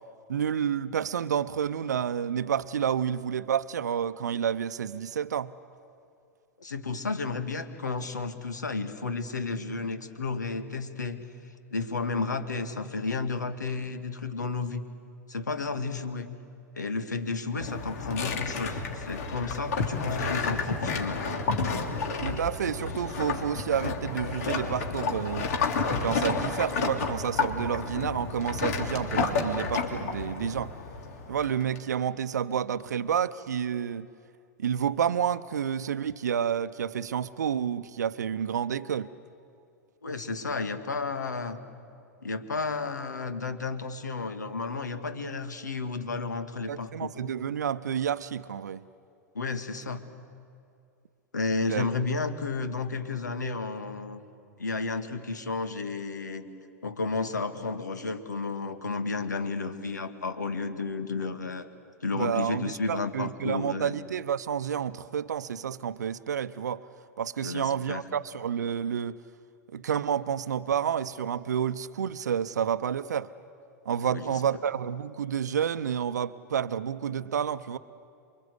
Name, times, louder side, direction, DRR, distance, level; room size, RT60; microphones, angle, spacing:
voice 1, 0.3-5.5 22.2-25.5 26.0-30.7 31.3-34.1 34.6-39.1 46.7-48.8 51.7-51.9 62.1-66.8 67.2-69.2 69.7-73.3 73.9-77.8, right 8 dB, 70° right, 0.7 m, -29 dB
voice 2, 6.6-11.2 11.7-14.8 15.3-16.3 16.7-21.4 40.0-41.6 42.2-47.1 49.3-50.0 51.3-54.2 54.6-56.4 56.8-61.7 62.0-63.9 67.4-68.0 74.0-74.4, left 4 dB, 80° left, 1.8 m, -32 dB
sound 1, 17.6-31.8, left 4 dB, 60° left, 3.0 m, -31 dB
28.5 x 23.5 x 8.1 m
figure-of-eight pair, 95°, 9 cm